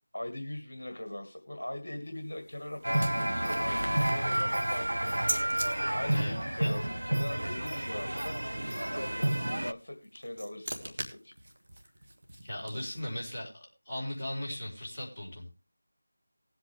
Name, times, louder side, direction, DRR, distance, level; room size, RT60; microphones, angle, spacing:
voice 1, 0.1-5.3 5.9-8.4 8.9-11.3, left 1 dB, 55° left, 5 dB, 1.8 m, -41 dB
sound 1, 2.0-5.7 9.8-13.2, right 1 dB, 50° right, 1.9 m, -41 dB
sound 2, 2.8-9.7, right 1 dB, 70° right, 0.7 m, -30 dB
voice 2, 6.1-6.7 12.4-15.5, left 1 dB, 15° left, -9 dB, 4.0 m, -38 dB
19.0 x 8.1 x 3.4 m, 0.31 s
figure-of-eight pair, 165°, 0 cm